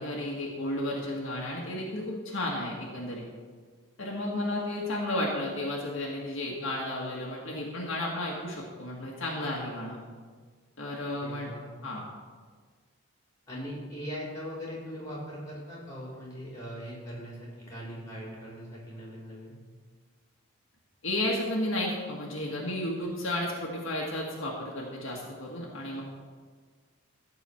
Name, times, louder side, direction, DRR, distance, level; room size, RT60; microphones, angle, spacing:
voice 1, 0.0-3.2 4.0-10.0 10.8-11.5 11.8-12.0 21.0-26.0, left 1 dB, 60° left, -3 dB, 1.9 m, -33 dB
voice 2, 11.2-11.6 13.5-19.5, equal, 15° left, -5 dB, 3.9 m, -40 dB
14.5 x 4.8 x 7.8 m, 1.5 s
head